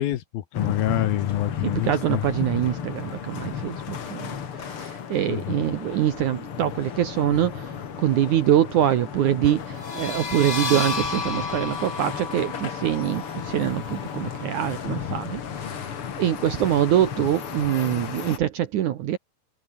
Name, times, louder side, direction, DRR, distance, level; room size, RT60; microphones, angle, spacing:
voice 1, 0.0-2.3 5.3-5.6, left 13 dB, 70° left, 3.0 m, -26 dB
sound 1, 0.5-18.4, left 7 dB, 45° left, 2.1 m, -34 dB
voice 2, 1.6-7.7 8.0-15.9 16.2-19.2, right 11 dB, 65° right, 2.1 m, -24 dB
sound 2, 9.7-15.1, left 4 dB, 30° left, 3.4 m, -33 dB
omnidirectional pair, 4.6 m